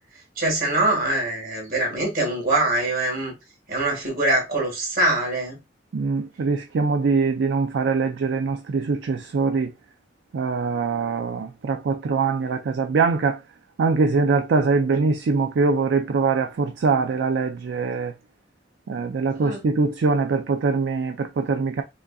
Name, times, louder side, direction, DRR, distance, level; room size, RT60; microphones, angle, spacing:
voice 1, 0.4-3.3 3.7-5.6 19.4-19.6, right 1 dB, 55° right, 1.9 m, -23 dB
voice 2, 5.9-9.7 10.3-13.4 13.8-18.1 18.9-21.8, right 4 dB, 70° right, 0.4 m, -23 dB
5.0 x 2.5 x 2.3 m
head